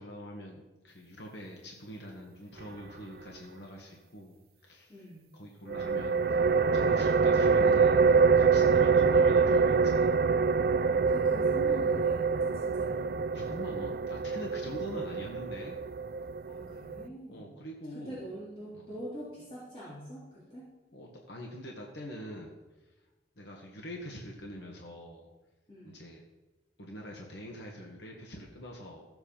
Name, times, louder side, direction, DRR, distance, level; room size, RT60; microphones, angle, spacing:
voice 1, 0.0-4.9 5.3-10.2 13.3-15.8 17.3-18.2 18.7-19.0 20.9-22.6 23.4-25.3 25.8-26.2 26.8-29.1, equal, 70° left, -1 dB, 1.8 m, -44 dB
voice 2, 4.9-5.3 10.7-13.1 14.6-14.9 16.5-17.5 17.9-20.6 25.7-26.0, right 1 dB, 30° left, -9 dB, 3.6 m, -44 dB
sound 1, 5.7-17.1, right 5 dB, 55° right, 0.4 m, -25 dB
14.5 x 8.0 x 5.8 m, 1.1 s
head